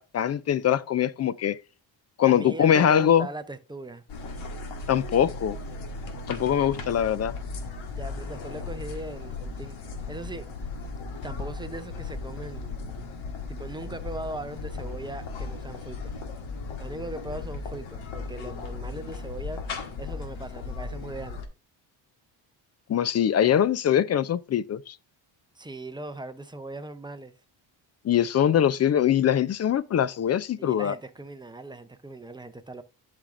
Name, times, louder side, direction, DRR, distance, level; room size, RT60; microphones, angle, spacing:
voice 1, 0.0-1.6 2.2-3.3 4.9-5.6 6.3-7.3 22.9-25.0 28.0-30.9, left 9 dB, 35° left, 0.4 m, -22 dB
voice 2, 2.3-4.0 7.9-10.5 11.2-12.8 13.5-16.2 16.8-19.6 20.0-21.4 25.5-27.3 30.6-32.8, right 2 dB, 10° right, 0.6 m, -39 dB
sound 1, 4.1-21.5, left 3 dB, 70° left, 1.8 m, -36 dB
11.5 x 5.1 x 2.5 m
cardioid pair, 120°, 49 cm